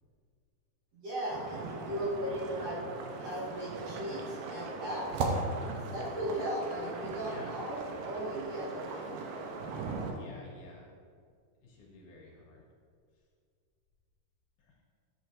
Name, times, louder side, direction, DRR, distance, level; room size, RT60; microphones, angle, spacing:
voice 1, 0.9-2.9 3.2-5.2 5.9-9.4, equal, 55° right, -6 dB, 2.4 m, -37 dB
sound 1, 1.3-10.1, right 3 dB, 85° right, 2.6 m, -38 dB
voice 2, 7.2-7.6 10.1-10.9 11.6-12.7 14.6-14.8, left 3 dB, 70° left, -2 dB, 2.6 m, -52 dB
10.5 x 7.9 x 2.6 m, 2.1 s
omnidirectional pair, 4.0 m